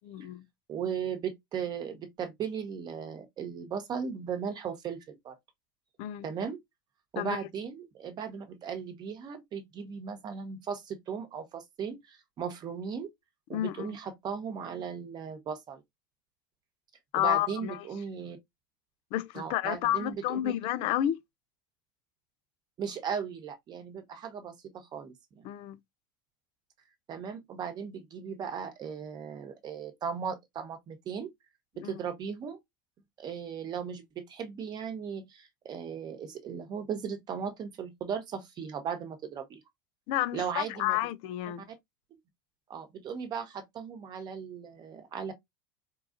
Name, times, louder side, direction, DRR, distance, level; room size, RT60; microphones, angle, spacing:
voice 1, 0.0-0.5 6.0-6.3 7.2-7.4 13.5-13.9 17.1-17.9 19.1-21.2 25.4-25.8 31.8-32.0 40.1-41.7, left 13 dB, 55° left, 0.5 m, -30 dB
voice 2, 0.7-5.4 6.2-6.6 7.1-13.1 13.5-15.8 17.1-18.4 19.3-20.5 22.8-25.5 27.1-31.3 31.8-32.6 33.2-39.6 40.3-41.0 42.7-45.3, right 7 dB, 40° right, 1.0 m, -37 dB
4.6 x 2.4 x 2.5 m
hypercardioid pair, 85°, 11 cm